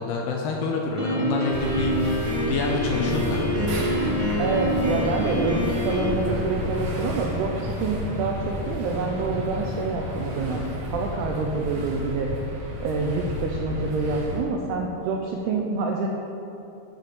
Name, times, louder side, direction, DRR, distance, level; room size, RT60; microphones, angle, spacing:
voice 1, 0.0-3.7, left 4 dB, 80° left, 0 dB, 2.5 m, -28 dB
Piano, 1.0-6.1, equal, 25° right, 0.7 m, -26 dB
sound 1, 1.5-14.4, left 1 dB, 55° right, 2.4 m, -31 dB
voice 2, 4.4-10.6 10.9-12.3 12.8-16.1, right 4 dB, 80° right, 0 dB, 2.4 m, -27 dB
11.5 x 4.3 x 7.7 m, 3.0 s
omnidirectional pair, 5.3 m